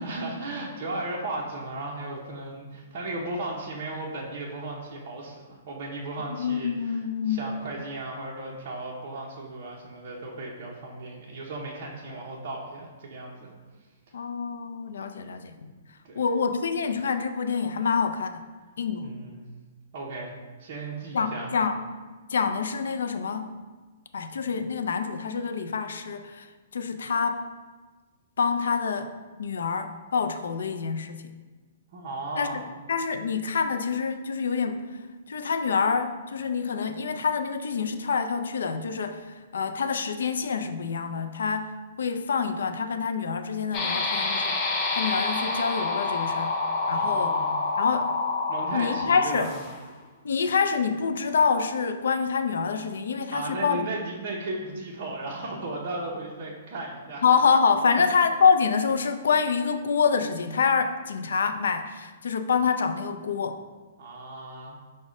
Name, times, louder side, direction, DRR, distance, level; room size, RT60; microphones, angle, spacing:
voice 1, 0.0-7.0 7.3-13.5 16.0-16.2 19.0-19.4 19.9-20.3 20.6-21.5 31.9-32.6 46.9-47.6 48.5-49.5 53.3-57.2 57.9-58.0 64.0-64.8, right 2 dB, 40° right, -3 dB, 0.7 m, -35 dB
voice 2, 6.3-7.5 14.1-15.7 16.2-18.4 18.8-19.1 21.1-21.8 22.3-23.6 24.1-26.5 26.7-27.5 28.4-29.1 29.4-31.2 32.4-35.0 35.3-44.6 44.9-46.5 46.9-47.3 47.8-48.1 48.7-49.5 50.2-53.9 57.2-63.6, left 5 dB, 90° left, 8 dB, 0.4 m, -26 dB
sound 1, 43.7-49.9, left 3 dB, 20° left, 0.5 m, -28 dB
5.2 x 2.1 x 4.8 m, 1.3 s
hypercardioid pair, 170°, 0 cm